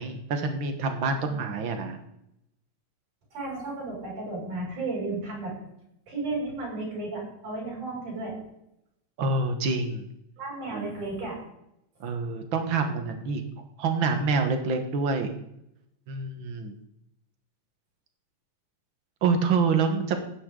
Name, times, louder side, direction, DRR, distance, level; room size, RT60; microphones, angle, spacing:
voice 1, 0.0-2.0 9.2-10.1 10.7-10.9 12.0-13.4 13.8-15.3 16.1-16.8 19.2-20.2, right 4 dB, 50° right, 6 dB, 1.7 m, -27 dB
voice 2, 3.3-5.5 6.1-8.4 10.4-11.4, right 2 dB, 75° right, -4 dB, 7.7 m, -33 dB
15.0 x 10.0 x 3.9 m, 0.80 s
omnidirectional pair, 3.6 m